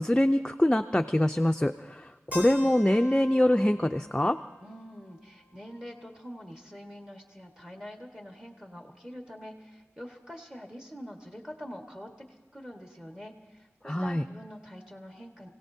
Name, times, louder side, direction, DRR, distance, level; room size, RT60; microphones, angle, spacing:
voice 1, 0.0-4.4 13.9-14.2, left 1 dB, 15° left, 6 dB, 0.5 m, -24 dB
Keyboard (musical), 2.3-6.2, left 1 dB, 30° right, 2.0 m, -45 dB
voice 2, 4.6-15.5, equal, 15° right, 2 dB, 1.7 m, -45 dB
28.5 x 17.0 x 2.8 m, 1.2 s
wide cardioid pair, 60°, 5 cm